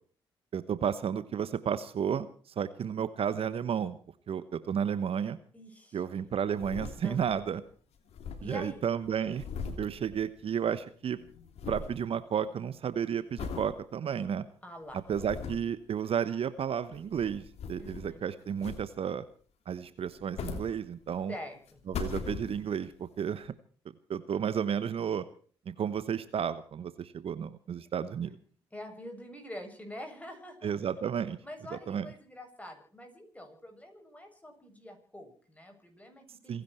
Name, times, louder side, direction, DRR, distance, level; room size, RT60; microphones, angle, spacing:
voice 1, 0.5-2.3 2.6-4.0 4.3-5.4 5.9-7.6 8.4-9.4 9.8-11.2 11.6-14.4 15.1-19.2 19.7-21.3 21.9-23.5 24.1-25.2 25.7-28.3 30.6-31.4 31.7-32.1 36.5-36.6, right 8 dB, 60° right, 14 dB, 1.1 m, -32 dB
voice 2, 5.5-6.3 7.0-7.2 8.4-8.8 14.6-15.0 17.8-18.2 21.3-21.8 28.7-30.8 31.4-36.6, left 1 dB, 15° left, 4 dB, 7.4 m, -46 dB
sound 1, 6.3-7.5 7.7-7.8 8.0-10.8 11.0-12.0 12.5-12.8 13.4-13.7 14.3-14.4 14.9-15.8 16.8-18.2 18.6-19.2 20.0-21.3 21.7-22.9 23.4-23.5, left 5 dB, 70° left, 3.0 m, -40 dB
27.5 x 10.5 x 4.4 m, 0.43 s
supercardioid pair, 55°, 11 cm